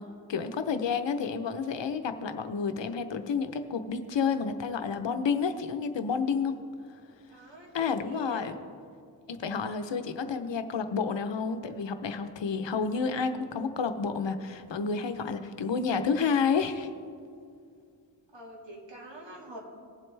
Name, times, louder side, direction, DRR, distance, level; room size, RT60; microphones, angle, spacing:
voice 1, 0.0-6.5 7.7-8.5 9.3-16.9, left 5 dB, 85° left, 9 dB, 0.8 m, -30 dB
voice 2, 7.3-8.4 18.3-19.6, right 1 dB, 90° right, -2 dB, 2.2 m, -46 dB
19.0 x 7.7 x 3.3 m, 2.3 s
wide cardioid pair, 90°, 43 cm